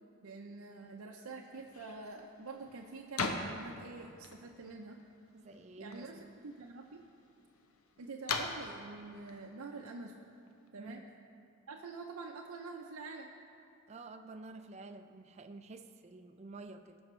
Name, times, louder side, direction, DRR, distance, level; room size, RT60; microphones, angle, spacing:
voice 1, 0.0-5.0 5.8-7.0 8.0-10.1 10.7-11.0 11.7-13.3, right 3 dB, 80° right, 0 dB, 0.6 m, -46 dB
sound 1, 1.5-10.7, left 4 dB, 75° left, 0.8 m, -44 dB
voice 2, 5.3-6.3 10.8-11.1 13.9-17.0, right 3 dB, 30° right, 9 dB, 0.4 m, -50 dB
17.0 x 6.2 x 3.1 m, 2.6 s
head